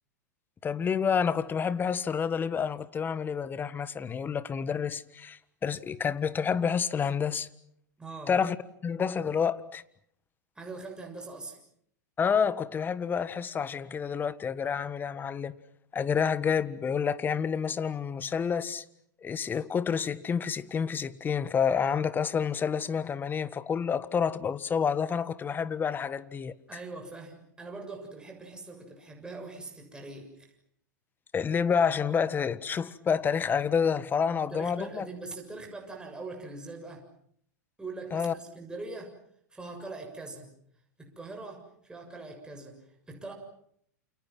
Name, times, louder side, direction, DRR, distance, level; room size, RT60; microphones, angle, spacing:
voice 1, 0.6-7.5 8.3-8.6 8.8-9.8 12.2-15.5 15.9-18.8 19.2-26.5 31.3-35.0 38.1-38.3, left 6 dB, 20° left, 1.5 m, -29 dB
voice 2, 8.0-8.4 10.6-11.6 26.7-30.5 34.3-37.1 37.8-39.1 39.5-40.5 41.0-43.3, right 3 dB, 10° right, 7.1 m, -42 dB
29.0 x 29.0 x 6.2 m
figure-of-eight pair, 100°, 10 cm